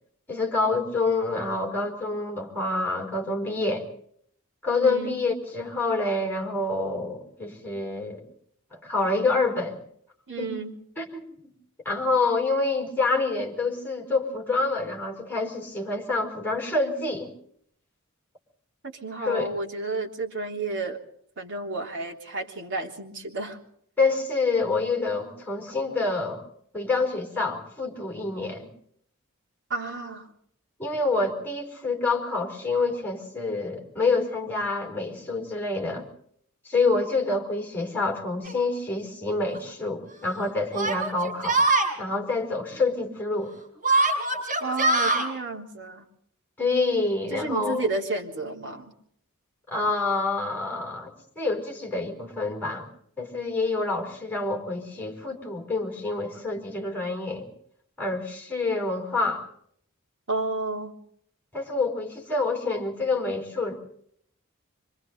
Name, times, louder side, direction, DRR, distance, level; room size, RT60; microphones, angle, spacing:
voice 1, 0.3-3.9 4.6-8.2 8.7-9.8 10.4-10.5 11.0-11.5 11.8-17.3 19.2-19.5 24.0-26.4 26.7-28.7 30.8-36.1 36.6-41.6 42.0-43.5 46.6-47.8 49.7-52.9 53.2-57.5 58.0-59.4 61.5-63.9, left 3 dB, 10° left, 1 dB, 5.0 m, -27 dB
voice 2, 4.8-5.2 10.3-10.8 18.8-21.0 21.4-23.6 29.7-30.3 44.6-46.1 47.3-48.9 60.3-60.9, right 3 dB, 55° right, 1 dB, 3.3 m, -31 dB
Yell, 38.4-38.5 39.5-39.6 40.7-41.9 43.8-45.3, right 2 dB, 40° right, 5.9 m, -23 dB
26.0 x 25.5 x 4.0 m, 0.66 s
head